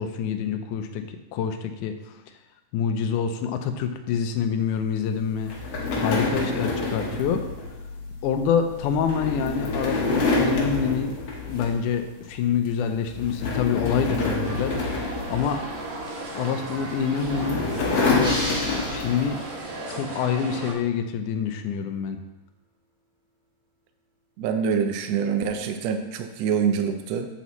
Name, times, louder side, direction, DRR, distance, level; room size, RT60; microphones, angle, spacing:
voice 1, 0.0-2.2 2.7-5.5 5.8-7.4 8.2-11.1 11.5-15.6 16.3-17.7 18.0-19.4 19.9-22.2, left 7 dB, 75° left, 7 dB, 2.0 m, -27 dB
sound 1, 5.5-12.0 12.4-12.7 13.1-16.1 16.9-19.3, left 3 dB, 55° left, 1.8 m, -27 dB
sound 2, 14.4-20.7, right 2 dB, 60° right, 2.5 m, -36 dB
sound 3, 18.2-19.7, equal, 5° right, 0.8 m, -33 dB
voice 2, 24.4-27.3, right 7 dB, 85° right, 6 dB, 1.4 m, -25 dB
8.2 x 8.0 x 3.1 m, 1.0 s
omnidirectional pair, 3.8 m